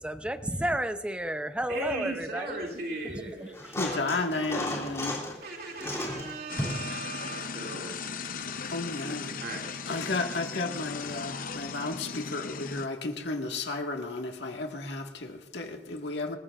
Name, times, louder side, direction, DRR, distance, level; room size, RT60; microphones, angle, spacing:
voice 1, 0.0-3.7, right 1 dB, 5° right, 9 dB, 0.7 m, -33 dB
voice 2, 1.7-4.4 5.4-8.1 9.4-9.9 11.4-11.5, right 2 dB, 60° right, 0 dB, 2.6 m, -38 dB
sound 1, 3.5-5.4 5.8-6.9 8.5-8.6, left 1 dB, 15° left, 2.8 m, -34 dB
voice 3, 3.7-5.2 7.5-7.9 8.6-9.4 9.9-16.4, left 3 dB, 75° left, 3 dB, 1.7 m, -33 dB
sound 2, 6.5-12.9, left 5 dB, 55° left, 0.7 m, -37 dB
27.0 x 14.5 x 2.5 m, 1.0 s
head